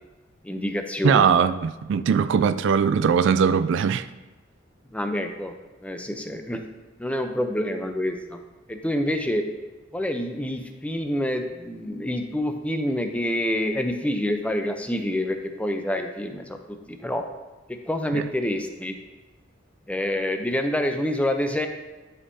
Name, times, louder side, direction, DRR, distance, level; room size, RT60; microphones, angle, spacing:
voice 1, 0.4-1.3 4.9-5.5 5.8-6.6 7.0-8.4 8.7-9.4 9.9-17.2 17.9-19.0 19.9-21.7, left 1 dB, 5° left, 0.5 m, -27 dB
voice 2, 1.0-4.1 18.1-18.3, right 6 dB, 65° right, 0.3 m, -20 dB
11.5 x 5.5 x 2.7 m
head